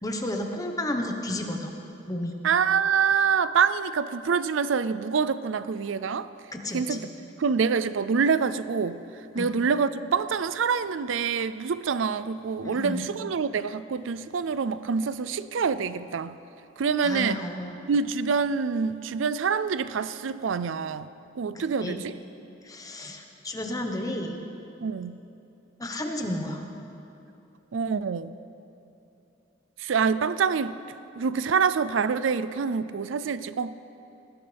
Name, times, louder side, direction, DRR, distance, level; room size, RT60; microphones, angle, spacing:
voice 1, 0.0-1.7 2.1-2.3 6.5-7.1 9.3-9.5 12.6-13.0 17.0-17.8 21.8-22.0 22.6-24.4 25.8-26.6, left 1 dB, 20° left, 3 dB, 1.2 m, -32 dB
voice 2, 2.4-6.3 6.7-7.1 7.4-16.4 16.8-17.4 17.9-21.1 21.4-22.1 24.8-25.2 27.7-28.4 29.8-30.7 31.2-33.7, right 6 dB, 85° right, 14 dB, 0.4 m, -26 dB
19.0 x 17.0 x 3.5 m, 2.8 s
head